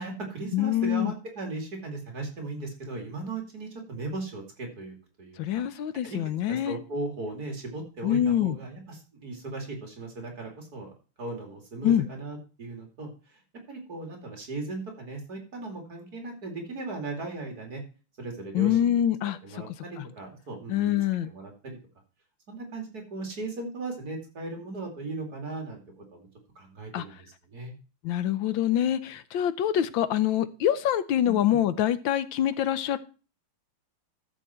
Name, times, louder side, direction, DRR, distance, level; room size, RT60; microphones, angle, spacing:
voice 1, 0.0-6.2 6.5-10.9 11.2-13.4 13.7-17.8 18.2-19.0 19.4-21.0 21.2-21.8 22.5-25.8 26.1-26.3 26.5-27.7 31.2-31.4, right 2 dB, 45° right, 3 dB, 3.0 m, -37 dB
voice 2, 0.5-1.1 5.4-6.8 8.0-8.6 11.8-12.1 18.5-19.4 20.7-21.3 26.9-27.0 28.0-33.0, left 11 dB, 70° left, 14 dB, 1.4 m, -25 dB
13.5 x 7.0 x 4.4 m, 0.35 s
omnidirectional pair, 2.4 m